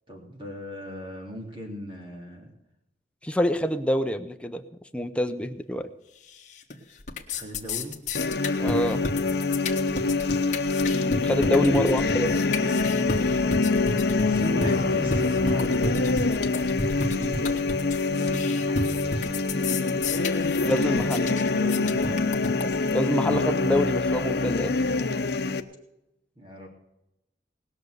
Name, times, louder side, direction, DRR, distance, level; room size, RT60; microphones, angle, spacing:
voice 1, 0.1-2.5 7.3-7.9 8.9-9.3 11.4-11.9 14.3-16.3 17.1-19.0 21.5-22.3 26.3-26.7, equal, 30° right, 1 dB, 3.2 m, -38 dB
voice 2, 3.2-4.6 4.9-5.9 8.6-9.0 11.2-12.3 20.6-21.4 22.9-24.8, equal, 5° left, 7 dB, 0.7 m, -26 dB
sound 1, 6.3-6.7 7.0-23.0, left 3 dB, 40° left, 1.6 m, -32 dB
sound 2, 8.1-25.6, left 3 dB, 65° left, 0.9 m, -25 dB
19.5 x 6.6 x 8.1 m, 0.91 s
head